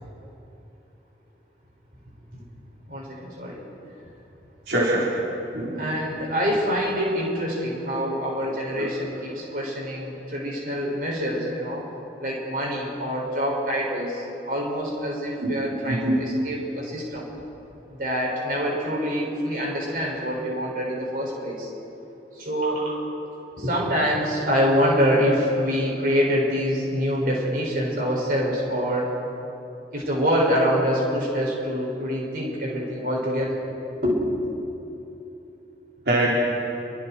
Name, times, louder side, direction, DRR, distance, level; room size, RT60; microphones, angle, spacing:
voice 1, 2.9-3.7 5.8-11.8 12.2-17.3 17.9-21.7 22.3-23.0 23.6-29.2 29.9-33.6 34.0-34.3, equal, 55° right, -3 dB, 6.5 m, -25 dB
voice 2, 4.7-5.1 5.5-5.9 8.4-8.9 15.4-16.2 36.1-36.4, right 1 dB, 80° right, -6 dB, 4.3 m, -24 dB
29.5 x 24.5 x 4.6 m, 2.9 s
head